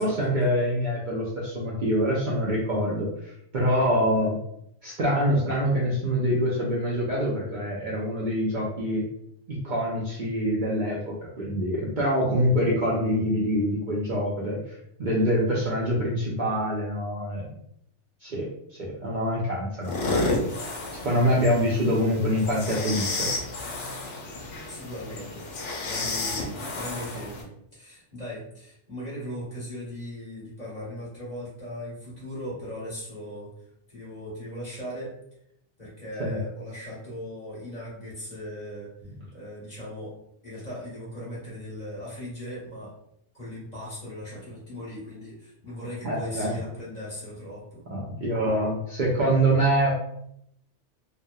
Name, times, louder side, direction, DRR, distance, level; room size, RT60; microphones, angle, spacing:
voice 1, 0.0-4.4 4.8-9.0 9.5-17.5 18.2-18.5 18.8-20.4 20.9-23.3 36.2-36.4 46.0-46.6 47.9-49.9, equal, 55° right, -5 dB, 0.5 m, -25 dB
sound 1, 19.8-27.4, left 2 dB, 80° left, 0.9 m, -31 dB
voice 2, 24.7-25.4 25.8-33.5 33.9-35.1 35.8-38.9 39.3-40.1 40.4-42.9 43.3-47.8, equal, 40° left, -7 dB, 1.1 m, -38 dB
2.8 x 2.0 x 2.2 m, 0.74 s
omnidirectional pair, 1.2 m